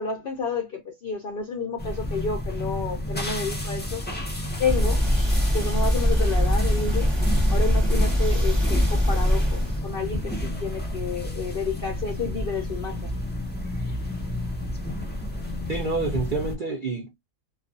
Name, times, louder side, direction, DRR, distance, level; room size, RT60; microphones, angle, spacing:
voice 1, 0.0-4.0 4.6-5.0 5.5-7.1 7.5-13.2, left 5 dB, 65° left, 0.5 m, -30 dB
sound 1, 1.8-16.5, left 1 dB, 15° left, 0.4 m, -31 dB
sound 2, 4.7-9.8, equal, 20° right, 0.8 m, -22 dB
voice 2, 15.7-17.2, right 4 dB, 65° right, 0.5 m, -28 dB
2.4 x 2.3 x 2.4 m
omnidirectional pair, 1.5 m